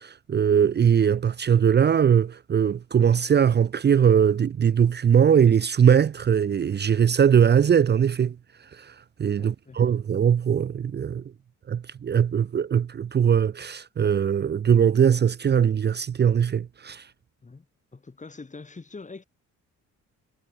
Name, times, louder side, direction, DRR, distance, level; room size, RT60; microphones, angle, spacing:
voice 1, 0.0-8.4 8.7-8.9 9.2-11.2 11.7-17.0, right 8 dB, 35° right, 0.6 m, -21 dB
voice 2, 9.4-9.8 17.4-17.7 17.9-19.2, left 3 dB, 25° left, 3.8 m, -43 dB
cardioid pair, 90°, 30 cm